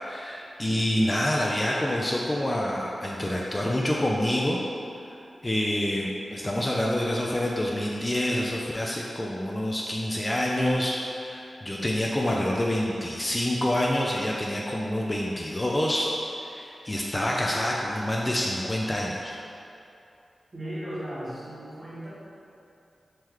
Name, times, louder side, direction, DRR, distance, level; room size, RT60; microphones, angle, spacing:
voice 1, 0.0-4.6 5.4-16.1 16.4-19.4, left 1 dB, 25° left, -3 dB, 0.4 m, -27 dB
voice 2, 20.5-22.1, right 1 dB, 30° right, -9 dB, 1.3 m, -36 dB
3.7 x 3.1 x 3.0 m, 2.7 s
cardioid pair, 50°, 0 cm